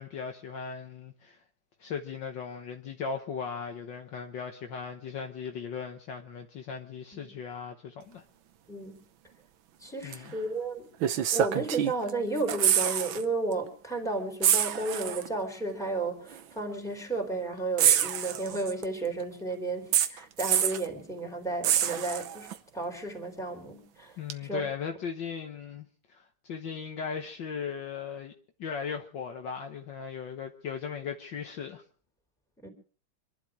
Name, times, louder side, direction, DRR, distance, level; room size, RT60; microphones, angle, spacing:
voice 1, 0.0-1.4 1.8-8.2 10.0-10.4 24.2-28.3 28.6-31.8, left 6 dB, 60° left, 1.8 m, -37 dB
voice 2, 8.7-9.0 9.8-10.9 11.3-22.5 22.7-24.2 24.4-24.6 32.6-32.7, right 2 dB, ahead, 3.8 m, -33 dB
sound 1, 10.1-10.3 11.0-12.1 12.4-13.2 13.5-13.7 14.4-15.3 16.3-16.4 17.8-18.8 19.9-20.9 21.6-22.6 24.3-24.4, right 10 dB, 70° right, 1.7 m, -26 dB
26.0 x 11.5 x 4.8 m
omnidirectional pair, 2.3 m